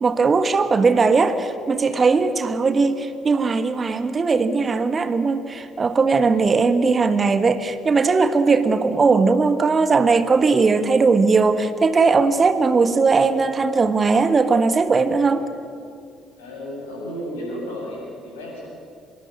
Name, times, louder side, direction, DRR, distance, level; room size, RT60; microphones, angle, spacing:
voice 1, 0.0-15.5, right 4 dB, 35° right, 11 dB, 1.5 m, -19 dB
voice 2, 16.4-18.6, equal, 75° left, -1 dB, 7.7 m, -33 dB
25.0 x 22.0 x 8.6 m, 2.4 s
figure-of-eight pair, 50°, 0 cm